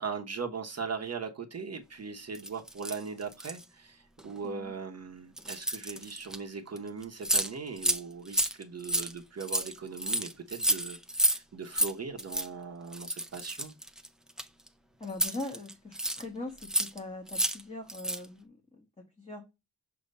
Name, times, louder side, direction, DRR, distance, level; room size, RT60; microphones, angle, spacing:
voice 1, 0.0-13.7, right 5 dB, 35° right, 0.9 m, -39 dB
sound 1, 2.3-3.6 4.2-4.4 5.4-6.4 6.8-6.9 7.0-7.5 7.8-8.0 8.3-11.4 11.7-11.9 12.2-12.5 12.9-14.7 15.1-16.2 16.6-17.0 17.3-17.6 17.9-18.3, right 1 dB, ahead, 0.5 m, -30 dB
voice 2, 15.0-18.8 19.2-19.4, left 2 dB, 15° left, 1.1 m, -41 dB
6.6 x 2.8 x 5.2 m
wide cardioid pair, 170°, 42 cm